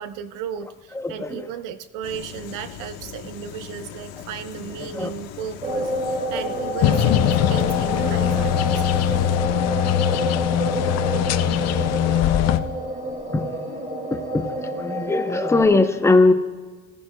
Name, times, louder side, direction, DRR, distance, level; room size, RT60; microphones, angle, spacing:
voice 1, 0.0-9.0, right 8 dB, 70° right, 11 dB, 0.8 m, -35 dB
voice 2, 0.9-1.5 4.8-5.1 6.3-6.4 8.0-8.1 13.3-13.5 14.1-16.3, left 3 dB, 10° left, 7 dB, 0.6 m, -20 dB
sound 1, 2.0-9.4, left 8 dB, 90° left, 1.2 m, -39 dB
sound 2, 5.6-15.6, equal, 20° right, 1.9 m, -29 dB
sound 3, 6.8-12.6, left 10 dB, 50° left, 0.6 m, -21 dB
17.5 x 10.5 x 2.2 m, 1.4 s
cardioid pair, 120°, 33 cm